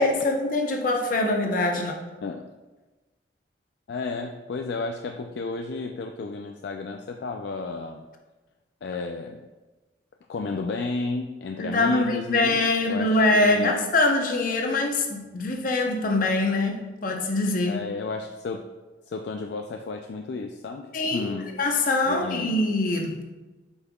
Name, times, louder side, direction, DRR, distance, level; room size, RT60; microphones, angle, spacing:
voice 1, 0.0-2.0 11.6-17.8 20.9-23.2, left 2 dB, 50° left, 3 dB, 0.8 m, -24 dB
voice 2, 3.9-8.1 8.8-9.4 10.3-12.6 12.8-13.8 17.7-18.7 19.1-21.5 22.1-22.6, left 3 dB, 65° left, 4 dB, 0.3 m, -32 dB
8.0 x 5.5 x 2.3 m, 1.2 s
head